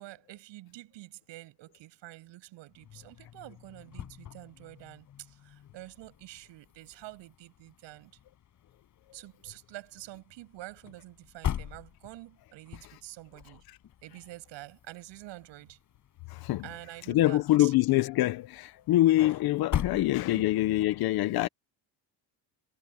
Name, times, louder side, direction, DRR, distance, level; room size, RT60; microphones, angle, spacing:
voice 1, 0.0-8.1 9.1-13.6 14.0-15.8 16.6-17.7 19.9-20.4, right 17 dB, 75° right, 6.8 m, -47 dB
sound 1, 2.7-20.8, left 10 dB, 40° left, 6.8 m, -42 dB
voice 2, 16.3-16.6 17.1-21.5, left 15 dB, 55° left, 0.8 m, -25 dB
cardioid pair, 175°, 45 cm